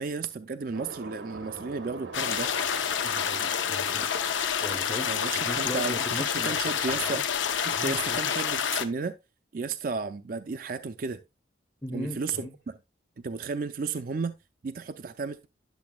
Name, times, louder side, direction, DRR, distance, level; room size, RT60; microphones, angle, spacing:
voice 1, 0.0-2.5 5.0-7.2 7.6-9.2 9.5-11.2 11.9-12.4 13.2-14.4 14.6-15.5, right 4 dB, 45° right, 0.4 m, -33 dB
sound 1, 0.7-5.9, right 3 dB, 85° right, 1.0 m, -44 dB
sound 2, 2.1-8.8, left 8 dB, 85° left, 0.7 m, -28 dB
voice 2, 3.0-4.1 4.6-7.2 7.7-8.2 11.8-12.5, left 1 dB, 10° left, 0.7 m, -38 dB
10.5 x 6.7 x 2.3 m
head